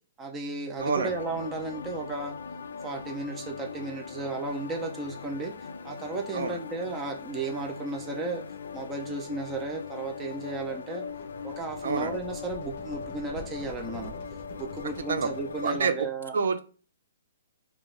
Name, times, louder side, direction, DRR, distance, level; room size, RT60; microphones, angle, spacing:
voice 1, 0.2-2.3 2.8-5.5 5.8-8.4 8.7-11.0 11.4-14.1 14.6-16.4, right 3 dB, 10° right, 0.4 m, -34 dB
sound 1, 0.8-15.8, left 6 dB, 80° left, 0.3 m, -40 dB
sound 2, 11.0-15.9, left 2 dB, 30° left, 0.9 m, -46 dB
voice 2, 11.8-12.1 15.1-15.3 15.6-16.1 16.3-16.6, right 5 dB, 70° right, 0.5 m, -27 dB
3.8 x 2.3 x 3.6 m
hypercardioid pair, 175°, 0 cm